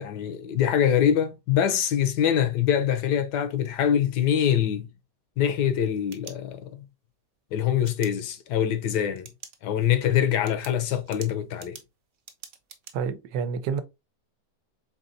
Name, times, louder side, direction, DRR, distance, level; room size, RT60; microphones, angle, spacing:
voice 1, 0.0-4.9 5.4-6.8 7.5-9.3 9.6-11.8, left 9 dB, 80° left, 1.3 m, -24 dB
sound 1, 5.7-6.9 7.9-8.1 9.2-9.6 10.0-10.1 10.5-12.9, right 7 dB, 60° right, 1.1 m, -46 dB
voice 2, 12.9-13.8, right 6 dB, 85° right, 1.3 m, -28 dB
4.1 x 4.0 x 2.6 m
omnidirectional pair, 1.9 m